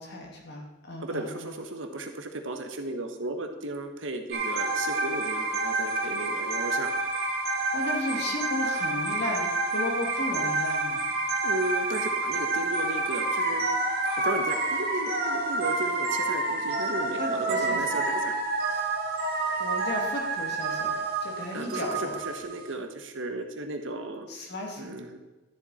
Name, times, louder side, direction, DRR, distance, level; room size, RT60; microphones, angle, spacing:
voice 1, 0.0-1.5 7.7-11.0 17.2-18.0 19.6-20.9 21.2-22.1 24.3-25.0, left 1 dB, 60° left, 0 dB, 2.4 m, -34 dB
voice 2, 1.0-6.9 11.4-13.6 14.2-18.3 18.7-18.8 21.5-24.3 24.8-25.2, right 2 dB, 80° right, 5 dB, 1.3 m, -35 dB
sound 1, 4.3-22.7, right 2 dB, 50° right, 1.9 m, -28 dB
12.5 x 7.4 x 4.3 m, 1.2 s
head